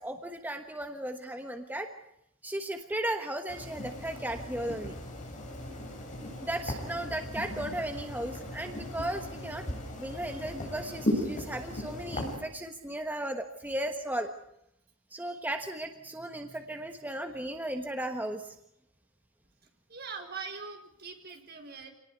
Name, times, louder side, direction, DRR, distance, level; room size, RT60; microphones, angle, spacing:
voice 1, 0.0-1.9 2.4-5.0 6.4-14.3 15.1-18.5, right 1 dB, 10° right, 5 dB, 1.3 m, -36 dB
sound 1, 3.5-12.4, left 1 dB, 40° left, 7.9 m, -37 dB
voice 2, 6.3-6.8 19.9-21.9, right 5 dB, 55° right, 4 dB, 4.6 m, -43 dB
27.0 x 19.0 x 8.3 m, 0.78 s
head